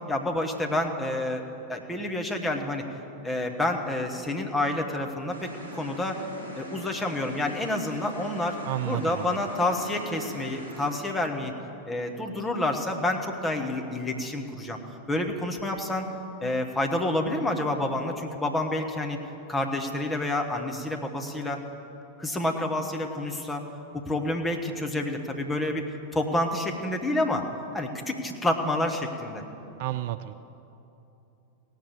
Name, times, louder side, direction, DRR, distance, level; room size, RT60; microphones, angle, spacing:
voice 1, 0.1-2.8 3.2-6.2 6.6-8.6 8.9-11.5 11.9-14.8 15.1-16.1 16.4-19.2 19.5-21.6 22.2-23.6 23.9-25.8 26.1-27.5 27.7-29.4, left 1 dB, 10° left, 2 dB, 1.3 m, -28 dB
sound 1, 5.3-10.9, right 1 dB, 70° left, 3.5 m, -42 dB
voice 2, 8.7-9.4 29.8-30.3, right 14 dB, 50° right, 13 dB, 0.3 m, -31 dB
17.5 x 6.5 x 6.9 m, 2.9 s
figure-of-eight pair, 90°, 0 cm